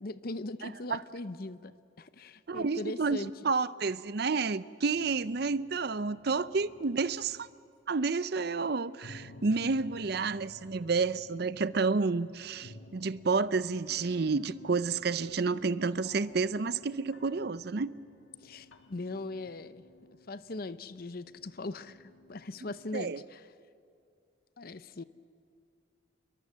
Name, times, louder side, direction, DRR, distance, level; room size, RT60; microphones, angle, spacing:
voice 1, 0.0-3.5 10.1-10.2 18.4-19.8 20.3-23.5 24.6-25.0, left 2 dB, 50° left, 14 dB, 0.7 m, -40 dB
voice 2, 0.6-1.0 2.5-7.5 7.9-17.9 22.9-23.2, right 4 dB, 55° right, 16 dB, 0.6 m, -30 dB
sound 1, 4.9-7.5 9.0-22.9, left 2 dB, 70° left, 1.6 m, -54 dB
28.0 x 22.5 x 7.5 m, 2.4 s
head